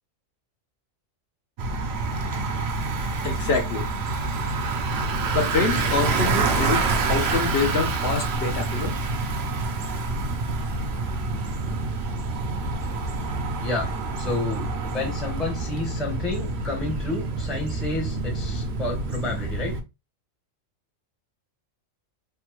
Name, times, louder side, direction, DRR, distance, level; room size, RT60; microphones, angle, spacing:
Bicycle, 1.6-19.8, right 3 dB, 60° right, 0.8 m, -27 dB
voice 1, 3.2-3.8 5.3-8.9, left 4 dB, 60° left, 0.8 m, -26 dB
voice 2, 13.2-13.9 14.2-19.8, left 2 dB, ahead, 0.7 m, -31 dB
3.3 x 2.2 x 3.0 m
omnidirectional pair, 1.4 m